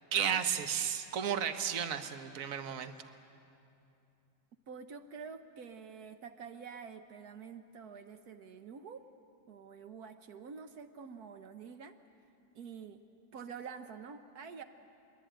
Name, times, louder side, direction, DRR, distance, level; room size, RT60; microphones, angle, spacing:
voice 1, 0.0-3.1, right 8 dB, 60° right, 8 dB, 1.4 m, -33 dB
voice 2, 4.7-9.0 9.5-12.0 12.5-13.0 13.3-14.6, right 6 dB, 75° right, 8 dB, 1.4 m, -47 dB
23.0 x 22.5 x 9.0 m, 2.7 s
omnidirectional pair, 1.6 m